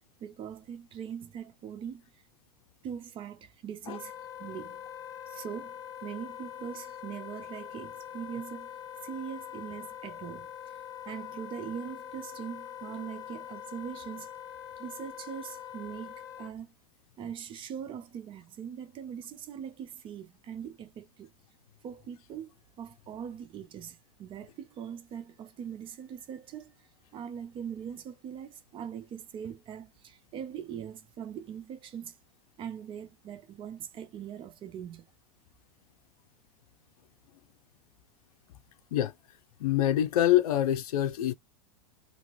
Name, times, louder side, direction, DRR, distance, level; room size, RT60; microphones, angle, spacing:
voice 1, 0.2-2.2 2.8-4.9 5.3-5.7 6.0-8.7 9.0-10.8 11.1-14.3 14.8-16.7 17.2-21.3 21.8-22.5 22.8-32.2 32.6-35.1, right 8 dB, 25° right, 0.5 m, -41 dB
Wind instrument woodwind instrument, 3.8-16.5, left 10 dB, 20° left, 0.8 m, -44 dB
voice 2, 39.6-41.3, left 12 dB, 80° left, 0.5 m, -25 dB
2.8 x 2.5 x 3.0 m
supercardioid pair, 135°, 19 cm